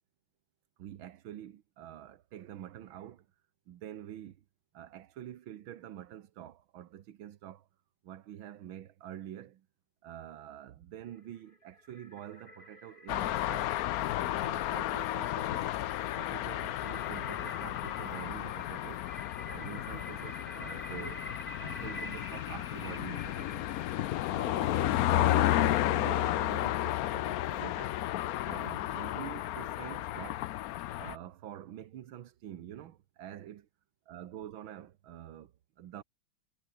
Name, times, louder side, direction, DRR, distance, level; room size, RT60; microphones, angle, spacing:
voice 1, 0.8-3.3 3.7-4.4 4.7-7.7 8.0-9.7 10.0-13.7 14.4-15.7 16.1-19.1 19.5-21.3 21.6-23.7 24.3-28.0 28.4-30.5 30.9-33.7 34.1-36.0, right 11 dB, 85° right, 1.9 m, -46 dB
sound 1, 11.2-24.6, left 1 dB, 25° left, 6.8 m, -49 dB
sound 2, 13.1-31.2, left 14 dB, 75° left, 0.8 m, -32 dB
omnidirectional pair, 2.2 m